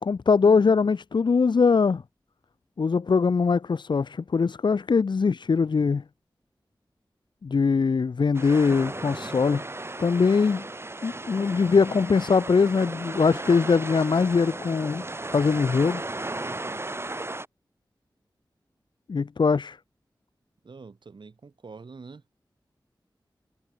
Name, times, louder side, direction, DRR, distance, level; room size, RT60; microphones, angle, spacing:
voice 1, 0.0-2.0 2.8-6.0 7.4-9.6 10.0-10.7 11.0-15.0 15.3-16.0 19.1-19.8, left 5 dB, 70° left, 0.6 m, -22 dB
sound 1, 8.3-17.5, right 2 dB, 30° right, 1.5 m, -35 dB
voice 2, 20.6-22.2, right 4 dB, 75° right, 1.8 m, -45 dB
wide cardioid pair, 60°, 8 cm